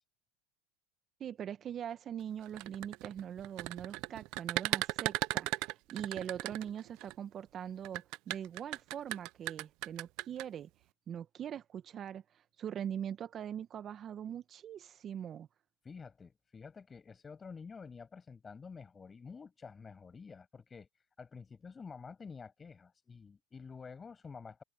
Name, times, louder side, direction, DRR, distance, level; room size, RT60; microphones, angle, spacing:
voice 1, 1.2-10.7 11.1-12.2 12.6-15.5, right 9 dB, 35° right, 1.9 m, -42 dB
sound 1, 2.5-7.1 7.8-10.4, right 22 dB, 55° right, 0.7 m, -36 dB
voice 2, 15.8-20.9 21.2-24.6, left 5 dB, 20° left, 6.8 m, -49 dB
hypercardioid pair, 105°, 0 cm